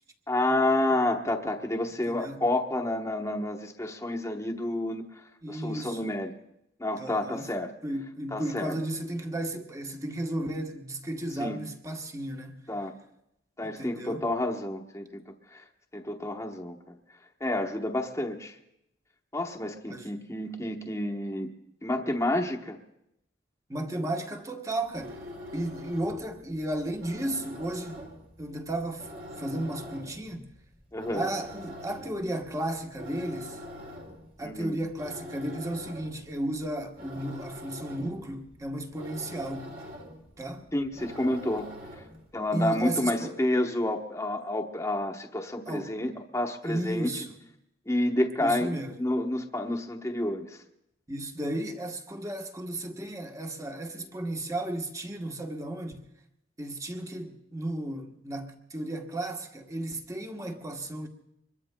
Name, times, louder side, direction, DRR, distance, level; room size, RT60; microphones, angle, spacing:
voice 1, 0.3-5.0 5.5-6.3 6.8-7.7 8.3-8.7 11.4-11.6 12.7-12.9 13.6-15.2 15.5-15.6 15.9-16.8 17.4-18.6 19.3-21.5 21.8-22.8 30.9-31.3 34.4-34.8 40.7-41.8 42.3-47.1 47.9-50.6, left 1 dB, 15° left, 1.0 m, -29 dB
voice 2, 2.1-2.5 5.4-6.1 7.0-7.5 7.8-12.6 13.6-14.2 19.9-20.1 23.7-25.2 25.5-28.0 28.4-29.1 29.4-30.5 31.1-33.6 34.4-39.7 40.4-40.6 42.5-43.4 45.7-45.9 46.6-47.4 48.4-49.0 51.1-56.0 56.6-61.1, right 1 dB, 15° right, 1.1 m, -34 dB
sound 1, 24.8-42.3, left 1 dB, 50° right, 2.2 m, -45 dB
25.5 x 22.0 x 2.2 m
head